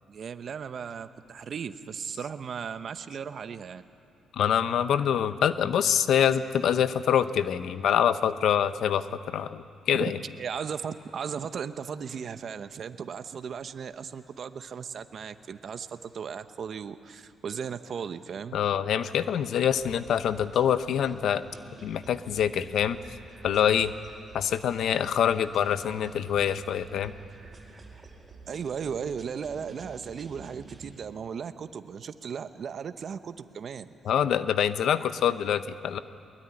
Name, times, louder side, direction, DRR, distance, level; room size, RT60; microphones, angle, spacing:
voice 1, 0.1-3.8 10.0-10.1 10.4-18.6 28.5-33.9, right 7 dB, 55° right, 10 dB, 1.0 m, -36 dB
voice 2, 4.3-10.2 18.5-21.4 21.8-23.0 23.4-23.9 24.3-27.1 34.0-36.0, left 9 dB, 70° left, 12 dB, 0.9 m, -25 dB
sound 1, 19.7-30.9, right 3 dB, 30° right, 4.9 m, -50 dB
22.0 x 20.5 x 9.9 m, 2.5 s
cardioid pair, 90°, 0 cm